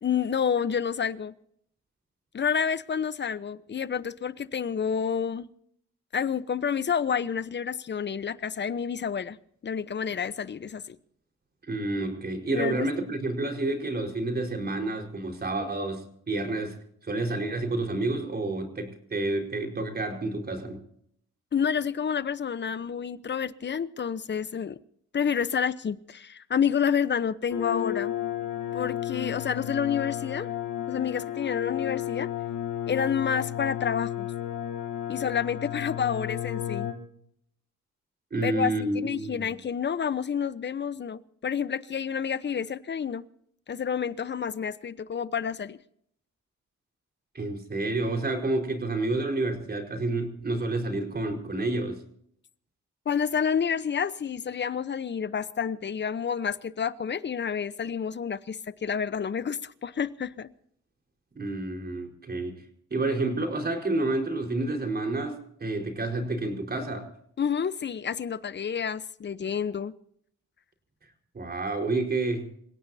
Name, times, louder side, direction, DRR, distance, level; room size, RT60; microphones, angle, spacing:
voice 1, 0.0-1.3 2.3-5.5 6.1-9.4 9.6-11.0 12.5-12.9 21.5-24.8 25.1-28.2 28.7-30.5 30.9-32.3 32.9-34.3 35.1-36.9 38.4-43.2 43.7-45.8 53.1-60.5 67.4-69.9, left 7 dB, 35° left, 0.9 m, -29 dB
voice 2, 11.7-20.8 38.3-39.5 47.3-52.0 61.3-62.6 62.9-67.1 71.3-72.5, right 2 dB, 30° right, 4.7 m, -29 dB
sound 1, 27.5-36.9, left 11 dB, 75° left, 5.2 m, -32 dB
27.5 x 17.0 x 2.8 m
cardioid pair, 90°, 30 cm